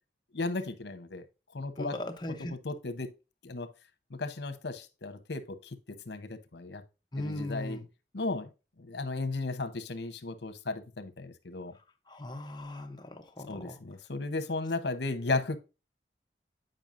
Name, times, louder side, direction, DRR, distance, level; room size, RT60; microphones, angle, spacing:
voice 1, 0.3-1.2 1.5-1.9 2.6-3.1 3.4-3.7 4.1-6.8 7.2-7.8 8.1-8.5 8.8-11.7 13.5-15.6, left 3 dB, 80° left, 0.9 m, -35 dB
voice 2, 1.8-2.5 7.1-7.9 12.1-13.8, left 1 dB, 25° left, 0.8 m, -38 dB
8.9 x 5.3 x 2.6 m
head